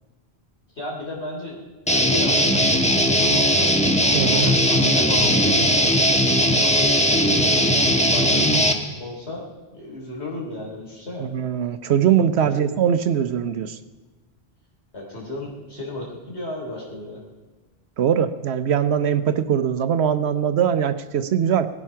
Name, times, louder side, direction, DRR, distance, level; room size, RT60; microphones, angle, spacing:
voice 1, 0.7-2.7 3.0-3.8 4.3-8.5 9.0-9.5 9.7-11.3 12.4-12.6 14.9-17.2, left 1 dB, 85° left, -3 dB, 3.5 m, -34 dB
Guitar, 1.9-8.7, equal, 5° left, 1.1 m, -18 dB
voice 2, 4.1-4.5 11.2-13.8 18.0-21.7, right 8 dB, 80° right, 10 dB, 1.0 m, -21 dB
18.0 x 12.0 x 5.6 m, 1.2 s
omnidirectional pair, 1.1 m